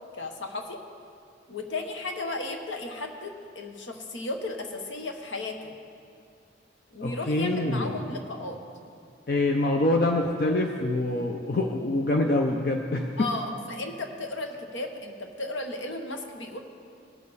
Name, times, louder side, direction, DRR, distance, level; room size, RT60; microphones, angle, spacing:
voice 1, 0.1-0.8 1.5-5.7 6.9-8.6 13.2-16.6, left 2 dB, 80° left, 4 dB, 1.1 m, -34 dB
voice 2, 7.0-8.0 9.3-13.3, left 2 dB, 50° left, 2 dB, 0.5 m, -25 dB
18.0 x 6.7 x 4.1 m, 2.3 s
head